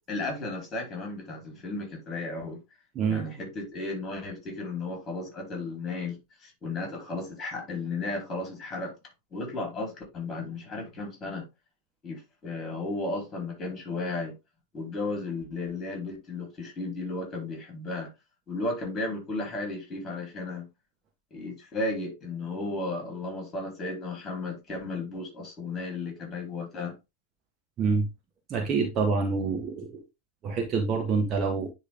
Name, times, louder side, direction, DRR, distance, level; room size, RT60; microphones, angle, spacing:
voice 1, 0.1-2.6 3.1-6.2 6.4-8.9 9.3-11.5 12.0-14.4 14.7-18.1 18.5-20.7 21.3-26.9, left 2 dB, 25° left, 3.9 m, -34 dB
voice 2, 2.9-3.3 27.8-28.1 28.5-30.0 30.4-31.7, right 4 dB, 30° right, 1.4 m, -26 dB
10.0 x 3.4 x 3.5 m
figure-of-eight pair, 90°, 0 cm